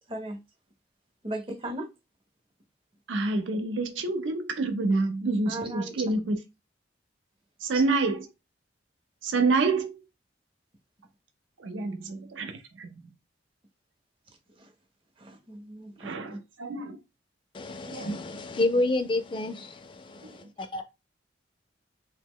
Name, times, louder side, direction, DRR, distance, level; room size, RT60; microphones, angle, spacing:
voice 1, 1.2-1.9 5.5-5.9 14.6-14.7 15.2-16.1, right 1 dB, 30° right, 0.6 m, -37 dB
voice 2, 3.1-6.4 7.6-8.3 9.2-10.0 11.6-13.1 16.0-17.0 17.9-18.2 20.2-20.5, right 3 dB, 80° right, 0.5 m, -28 dB
voice 3, 17.5-20.8, left 2 dB, 25° left, 0.3 m, -29 dB
2.8 x 2.1 x 3.6 m
head